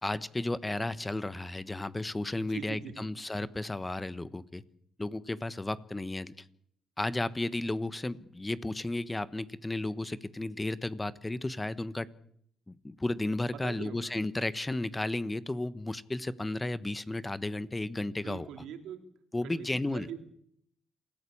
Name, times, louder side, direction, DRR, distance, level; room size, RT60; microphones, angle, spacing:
voice 1, 0.0-4.6 5.0-6.3 7.0-12.1 12.7-18.5 19.3-20.1, left 2 dB, 15° left, 16 dB, 1.1 m, -33 dB
voice 2, 2.4-3.1 13.5-14.1 18.1-19.1 19.4-19.7 19.9-20.2, right 9 dB, 85° right, 7 dB, 3.4 m, -43 dB
27.5 x 16.0 x 8.6 m, 0.69 s
cardioid pair, 90°, 0 cm